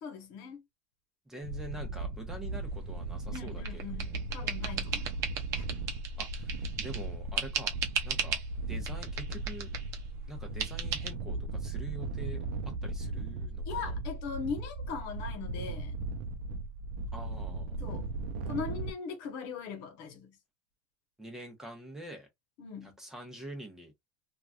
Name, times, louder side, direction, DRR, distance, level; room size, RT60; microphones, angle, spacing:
voice 1, 0.0-0.6 3.3-5.2 5.5-5.7 13.7-16.0 17.8-18.1 18.5-20.4 22.6-23.0, left 6 dB, 65° left, 1.0 m, -40 dB
voice 2, 1.3-4.2 6.2-7.8 8.0-8.4 8.7-9.7 10.3-14.0 17.1-17.8 21.2-22.3 22.8-23.9, right 1 dB, 5° right, 0.9 m, -46 dB
sound 1, 1.4-18.9, right 2 dB, 90° right, 0.5 m, -37 dB
sound 2, 3.3-7.1 7.4-8.5 8.8-10.0 10.6-11.1, right 7 dB, 50° right, 0.7 m, -36 dB
3.0 x 2.5 x 2.3 m
cardioid pair, 145°, 6 cm